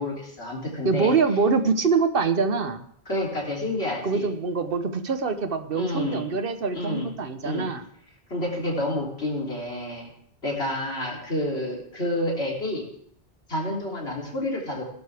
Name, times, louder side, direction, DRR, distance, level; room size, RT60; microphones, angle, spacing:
voice 1, 0.0-1.1 3.1-4.3 5.8-6.3 6.7-7.1 7.4-7.7 8.3-10.1 10.4-12.8 13.5-14.9, left 1 dB, 80° left, -2 dB, 3.5 m, -29 dB
voice 2, 0.8-2.8 4.0-7.8, right 4 dB, 60° right, 10 dB, 1.2 m, -24 dB
16.5 x 12.5 x 3.5 m, 0.67 s
omnidirectional pair, 1.1 m